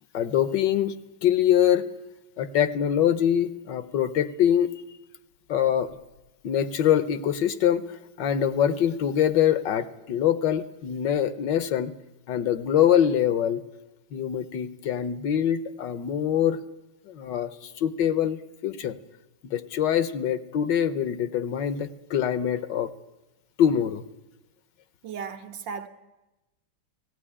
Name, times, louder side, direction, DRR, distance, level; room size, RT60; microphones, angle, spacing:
voice 1, 0.1-1.0 1.2-1.9 2.4-4.7 5.5-6.0 6.4-11.9 12.3-13.6 14.1-16.6 17.1-19.0 19.5-22.9 23.6-24.0, left 9 dB, 70° left, 1.5 m, -24 dB
voice 2, 25.0-25.9, right 6 dB, 70° right, 1.9 m, -35 dB
17.0 x 16.0 x 9.9 m
omnidirectional pair, 2.1 m